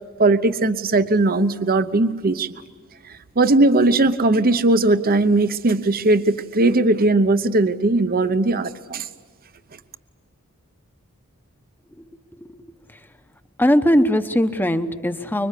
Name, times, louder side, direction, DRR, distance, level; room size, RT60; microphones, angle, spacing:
voice 1, 0.2-2.5 3.4-9.1, right 2 dB, 45° right, 11 dB, 0.9 m, -18 dB
voice 2, 13.6-15.5, equal, 10° left, 9 dB, 1.0 m, -19 dB
25.5 x 23.0 x 8.4 m, 1.5 s
head